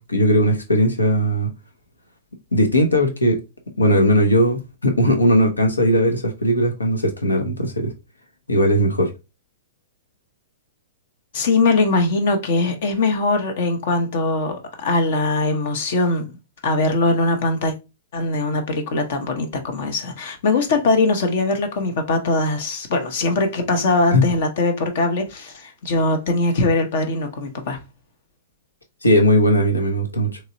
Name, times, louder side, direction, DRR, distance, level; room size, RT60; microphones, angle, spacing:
voice 1, 0.0-1.5 2.5-3.4 3.8-7.9 8.5-9.1 24.1-24.2 29.0-30.4, equal, 80° left, 0.9 m, -18 dB
voice 2, 11.3-16.3 16.6-17.7 18.1-27.8, left 3 dB, 50° left, 0.9 m, -21 dB
3.8 x 3.1 x 2.6 m
figure-of-eight pair, 110°, 0 cm